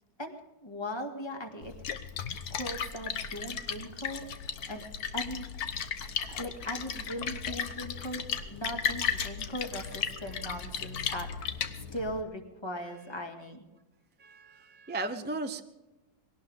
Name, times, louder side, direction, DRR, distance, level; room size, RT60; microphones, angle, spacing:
voice 1, 0.2-1.7 2.5-4.2 4.7-4.9 5.1-5.5 6.3-8.2 8.5-13.6, equal, 15° left, 3 dB, 2.1 m, -39 dB
Splash splatter, 1.6-12.2, left 7 dB, 75° left, 1.6 m, -35 dB
voice 2, 14.2-15.6, right 2 dB, 10° right, 7 dB, 0.4 m, -36 dB
22.0 x 17.5 x 3.6 m, 1.1 s
omnidirectional pair, 1.7 m